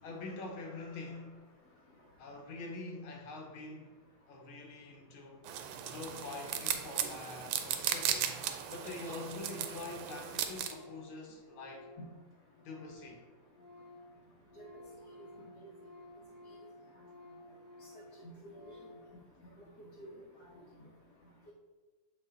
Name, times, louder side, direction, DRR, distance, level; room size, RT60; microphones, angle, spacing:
voice 1, 0.0-4.0 4.3-5.5 5.8-11.9 12.6-13.3, left 3 dB, 75° left, 1.8 m, -45 dB
sound 1, 5.5-10.7, right 9 dB, 85° right, 1.5 m, -36 dB
Organ, 9.6-13.2 13.4-19.1, left 1 dB, 15° left, 0.9 m, -55 dB
voice 2, 17.9-18.8 19.8-20.1, equal, 60° left, 1.3 m, -50 dB
7.3 x 4.1 x 3.7 m
omnidirectional pair, 2.3 m